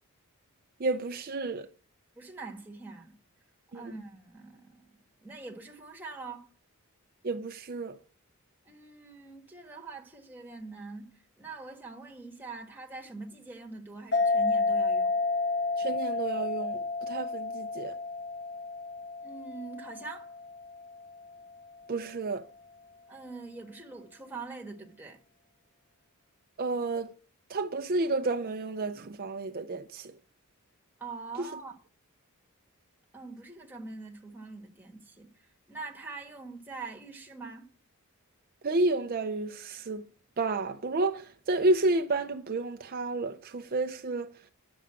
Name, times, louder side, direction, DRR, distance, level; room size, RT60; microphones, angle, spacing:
voice 1, 0.8-1.7 3.7-3.9 7.2-8.0 15.8-18.0 21.9-22.4 26.6-27.1 27.5-30.1 31.4-31.5 38.6-40.0 40.4-44.3, right 2 dB, 40° right, 0.5 m, -30 dB
voice 2, 2.1-3.2 3.7-6.5 8.7-11.1 11.4-15.1 19.2-20.3 23.1-25.2 31.0-31.8 33.1-35.3 35.7-37.7, right 3 dB, 10° right, 1.4 m, -43 dB
sound 1, 14.1-21.2, left 3 dB, 50° left, 1.2 m, -31 dB
10.5 x 7.1 x 8.6 m
head